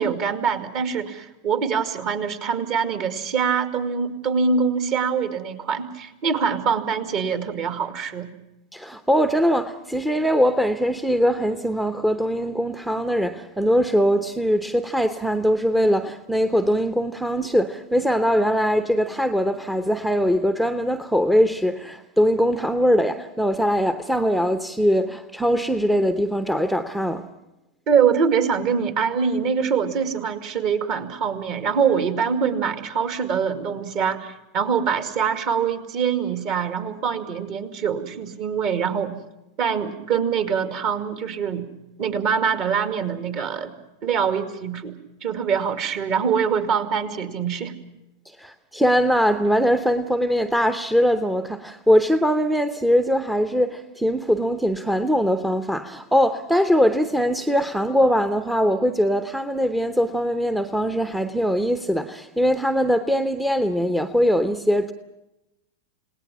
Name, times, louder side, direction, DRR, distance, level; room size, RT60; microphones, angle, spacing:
voice 1, 0.0-8.3 27.9-39.1 39.6-41.7 42.0-43.7 44.0-44.9 45.2-47.7, right 6 dB, 40° right, 8 dB, 2.3 m, -24 dB
voice 2, 8.7-27.2 48.4-64.9, equal, 5° right, 10 dB, 0.9 m, -21 dB
29.5 x 18.5 x 6.1 m, 0.93 s
figure-of-eight pair, 90°, 0 cm